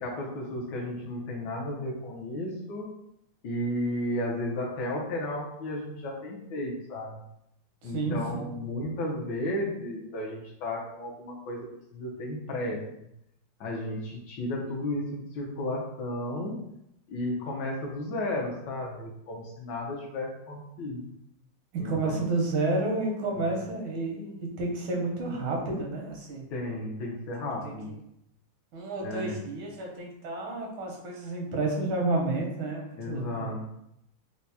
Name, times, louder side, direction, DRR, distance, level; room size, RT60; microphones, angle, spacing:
voice 1, 0.0-2.9 3.4-7.2 7.8-13.1 13.6-16.6 17.1-21.1 21.8-22.2 23.4-23.6 26.5-27.9 29.0-29.4 33.0-33.7, left 1 dB, 70° left, -2 dB, 1.2 m, -33 dB
voice 2, 7.8-8.5 21.8-26.5 27.6-27.7 28.7-33.5, right 2 dB, 90° right, -1 dB, 1.6 m, -30 dB
4.5 x 2.0 x 2.7 m, 0.79 s
omnidirectional pair, 2.2 m